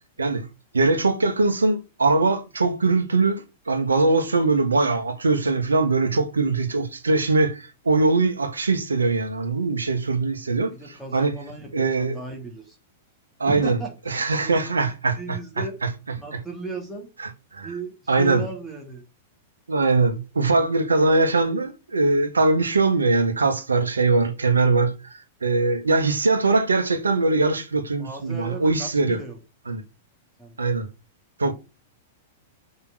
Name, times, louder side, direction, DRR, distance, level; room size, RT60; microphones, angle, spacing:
voice 1, 0.7-10.7 11.1-11.3 11.7-12.2 13.4-13.8 14.1-15.4 16.3-16.4 17.5-17.7 18.1-18.4 19.7-29.2 29.7-29.8 30.6-30.9 31.4-31.5, right 3 dB, 85° right, 1.4 m, -21 dB
voice 2, 10.7-12.8 13.5-13.9 14.3-14.8 15.1-15.8 16.2-17.1 17.6-19.0 28.0-29.4 30.4-30.6, right 3 dB, ahead, 3.3 m, -36 dB
5.9 x 5.5 x 6.3 m
figure-of-eight pair, 100°, 0 cm